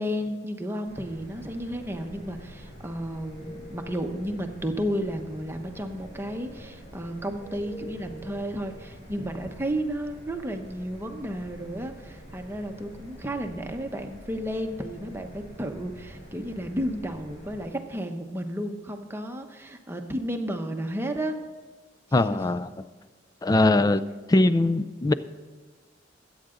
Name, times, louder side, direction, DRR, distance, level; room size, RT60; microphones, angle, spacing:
voice 1, 0.0-21.4 22.1-22.5, equal, 10° right, 4 dB, 0.9 m, -32 dB
sound 1, 0.8-17.6, equal, 40° left, 4.4 m, -46 dB
voice 2, 22.1-22.7 23.4-24.0 24.3-25.1, left 2 dB, 20° left, 13 dB, 0.4 m, -21 dB
21.5 x 8.8 x 3.8 m, 1.5 s
head